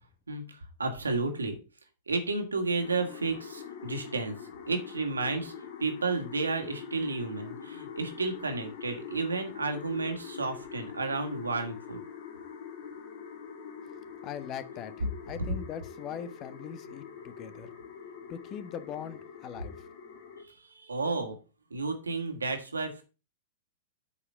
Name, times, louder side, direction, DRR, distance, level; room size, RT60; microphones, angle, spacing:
voice 1, 0.3-1.6 2.1-4.4 4.7-12.0 20.4-21.4 21.7-23.0, right 3 dB, 80° right, 2.1 m, -32 dB
sound 1, 2.8-20.4, left 7 dB, 50° left, 2.3 m, -44 dB
voice 2, 14.2-14.9 15.3-17.7 18.3-19.8, left 8 dB, 35° left, 1.0 m, -40 dB
8.3 x 5.0 x 6.7 m
figure-of-eight pair, 100°, 0 cm